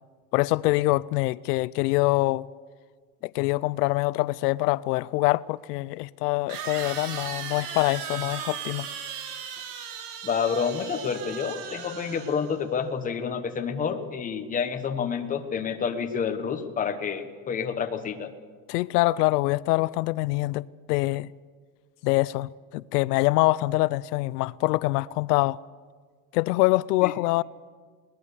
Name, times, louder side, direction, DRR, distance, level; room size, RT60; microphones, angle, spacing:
voice 1, 0.3-2.5 3.2-8.9 18.7-21.3 22.0-25.6 26.3-27.4, left 20 dB, 85° left, 0.6 m, -24 dB
sound 1, 4.9-5.0 6.5-12.6, right 8 dB, 85° right, 3.2 m, -37 dB
voice 2, 10.2-18.3 27.0-27.1, left 6 dB, 15° left, 1.3 m, -29 dB
21.0 x 19.0 x 6.8 m
supercardioid pair, 155°, 46 cm